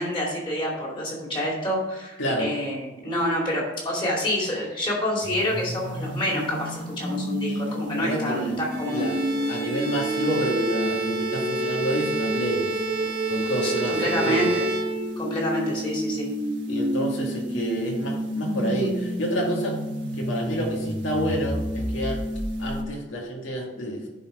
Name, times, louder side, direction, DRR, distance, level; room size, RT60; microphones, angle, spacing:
voice 1, 0.0-9.1 13.6-14.6 15.2-16.3, left 1 dB, 25° left, -3 dB, 2.5 m, -27 dB
voice 2, 2.2-2.5 7.5-7.6 8.0-8.6 8.9-9.2 9.5-12.8 13.3-14.5 16.7-19.8 20.1-22.2 22.6-24.1, equal, 85° left, -1 dB, 2.1 m, -29 dB
sound 1, 5.2-22.8, equal, 75° right, 1.3 m, -30 dB
Bowed string instrument, 8.7-15.5, right 3 dB, 50° right, 1.4 m, -30 dB
10.0 x 4.4 x 4.9 m, 1.1 s
head